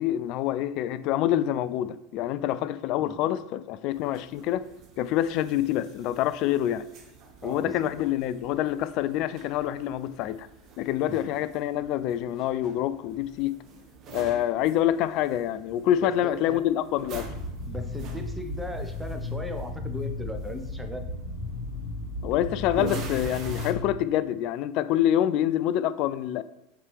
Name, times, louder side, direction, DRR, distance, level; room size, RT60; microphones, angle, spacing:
voice 1, 0.0-4.6 5.0-6.8 7.4-10.5 10.8-13.6 14.1-17.3 22.2-26.4, left 12 dB, 50° left, 0.3 m, -26 dB
sound 1, 3.9-23.7, right 5 dB, 45° right, 0.9 m, -45 dB
voice 2, 7.4-8.2 11.1-11.3 16.0-16.6 17.7-21.0, equal, 5° right, 0.9 m, -38 dB
sound 2, 17.1-23.8, left 3 dB, 65° left, 1.2 m, -35 dB
6.6 x 4.4 x 3.3 m
figure-of-eight pair, 80°, 0 cm